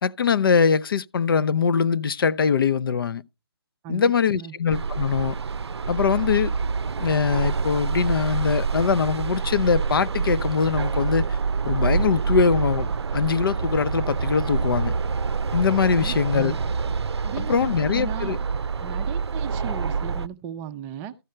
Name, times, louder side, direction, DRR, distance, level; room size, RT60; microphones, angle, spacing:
voice 1, 0.0-3.2 3.9-5.3 5.9-6.5 7.0-11.4 11.6-12.9 13.1-14.9 15.5-16.5 17.4-18.4, left 6 dB, 60° left, 0.7 m, -22 dB
voice 2, 3.8-4.5 15.9-16.7 17.2-18.4 18.8-21.2, right 9 dB, 15° right, 0.6 m, -36 dB
sound 1, 4.7-20.3, right 5 dB, 85° right, 0.5 m, -26 dB
13.5 x 6.4 x 4.4 m
hypercardioid pair, 155°, 14 cm